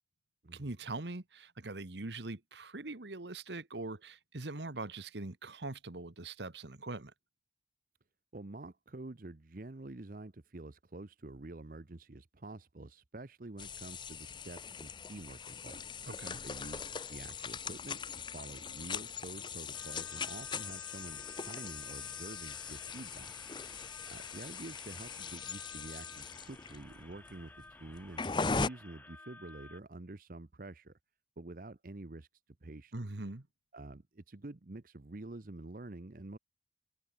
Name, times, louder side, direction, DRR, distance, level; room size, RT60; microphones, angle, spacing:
voice 1, 0.5-7.1 16.1-16.4 32.9-33.5, right 2 dB, 80° right, 1.5 m, -42 dB
voice 2, 8.3-15.9 16.4-23.3 24.1-27.5 27.8-28.2 28.6-30.9 31.4-32.3 32.6-33.0 33.7-36.4, right 2 dB, 50° right, 0.9 m, -48 dB
sound 1, 13.6-28.7, left 5 dB, 25° left, 0.6 m, -40 dB
sound 2, 19.7-29.8, left 2 dB, 10° left, 1.0 m, -55 dB
head